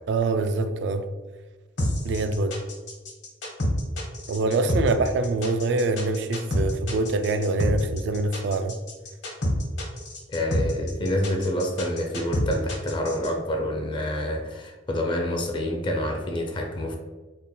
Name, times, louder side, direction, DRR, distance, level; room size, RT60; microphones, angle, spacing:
voice 1, 0.1-1.1 2.0-2.6 4.3-8.8, right 3 dB, 70° right, 0.3 m, -25 dB
sound 1, 1.8-13.3, equal, 75° left, 1.0 m, -28 dB
voice 2, 10.3-17.0, left 1 dB, 25° left, 0.4 m, -27 dB
3.5 x 2.2 x 4.1 m
head